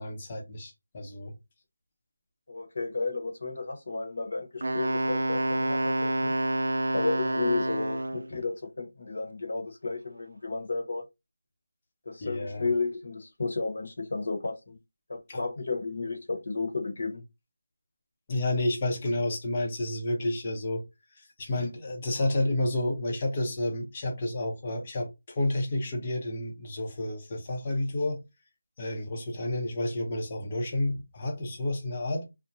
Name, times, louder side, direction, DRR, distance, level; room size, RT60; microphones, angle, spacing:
voice 1, 0.0-1.3 12.2-12.7 15.3-15.4 18.3-20.8 21.2-28.2 28.8-32.2, left 1 dB, 25° left, 0.7 m, -30 dB
voice 2, 2.5-6.3 6.9-11.0 12.0-14.8 15.1-17.2, left 3 dB, 55° left, 0.9 m, -33 dB
Wind instrument woodwind instrument, 4.6-8.3, right 1 dB, 70° right, 0.3 m, -28 dB
2.6 x 2.1 x 2.9 m
figure-of-eight pair, 175°, 0 cm